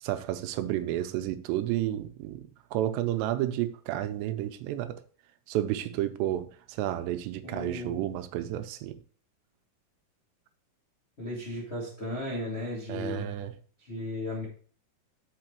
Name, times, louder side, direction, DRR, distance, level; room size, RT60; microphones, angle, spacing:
voice 1, 0.0-5.0 5.5-9.0 12.9-13.6, right 13 dB, 90° right, 2.9 m, -31 dB
voice 2, 7.4-8.1 11.2-13.3 13.9-14.4, left 1 dB, 40° left, 0.9 m, -35 dB
5.7 x 5.3 x 4.4 m
omnidirectional pair, 4.9 m